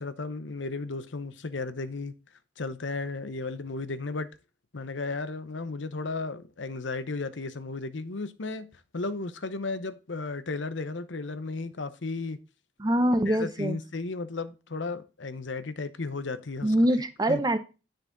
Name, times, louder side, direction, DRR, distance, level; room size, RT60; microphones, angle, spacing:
voice 1, 0.0-2.1 2.6-4.3 4.7-12.4 13.3-16.7 17.3-17.4, left 3 dB, 85° left, 0.9 m, -34 dB
voice 2, 12.8-13.8 16.6-17.6, right 1 dB, 20° right, 0.8 m, -24 dB
9.9 x 6.4 x 3.9 m
head